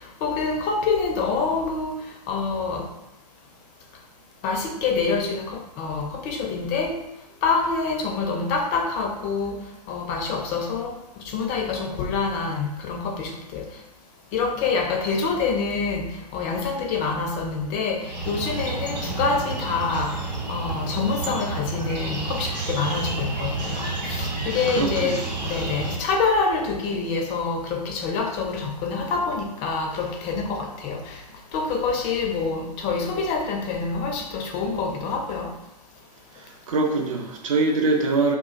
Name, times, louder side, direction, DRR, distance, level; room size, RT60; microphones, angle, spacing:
voice 1, 0.2-1.9 2.3-2.9 4.4-7.0 7.4-9.6 9.9-10.9 11.2-13.6 14.3-20.1 20.5-31.2 31.5-35.5, left 4 dB, 25° left, 2 dB, 0.4 m, -26 dB
sound 1, 18.0-26.0, right 3 dB, 85° right, 0.8 m, -30 dB
voice 2, 24.7-25.6 36.7-38.4, right 3 dB, 50° right, 2 dB, 0.5 m, -24 dB
2.1 x 2.0 x 3.7 m, 0.91 s
figure-of-eight pair, 105°, 21 cm